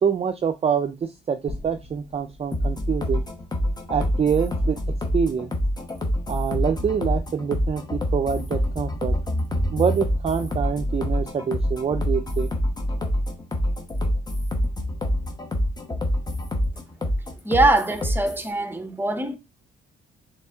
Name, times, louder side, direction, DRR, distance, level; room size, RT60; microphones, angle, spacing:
voice 1, 0.0-3.2 3.9-4.8 5.1-5.5 6.3-9.1 9.7-12.5, right 7 dB, 30° right, 0.4 m, -25 dB
sound 1, 1.5-5.7, left 2 dB, 65° left, 1.3 m, -44 dB
sound 2, 2.5-18.5, equal, 20° left, 1.1 m, -26 dB
voice 2, 17.4-19.4, right 2 dB, 10° right, 0.8 m, -22 dB
4.1 x 3.2 x 3.5 m
cardioid pair, 90°, 20 cm